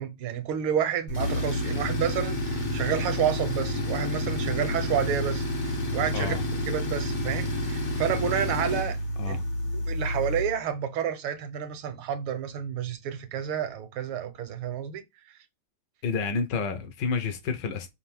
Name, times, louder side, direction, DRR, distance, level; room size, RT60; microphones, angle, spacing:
voice 1, 0.0-6.4 6.7-9.0 9.3-9.4 9.9-15.0, right 9 dB, 80° right, 1.7 m, -30 dB
Tools, 1.1-10.6, left 1 dB, 40° left, 0.7 m, -29 dB
voice 2, 16.0-17.9, left 5 dB, 60° left, 1.6 m, -29 dB
5.7 x 2.5 x 3.5 m
omnidirectional pair, 2.3 m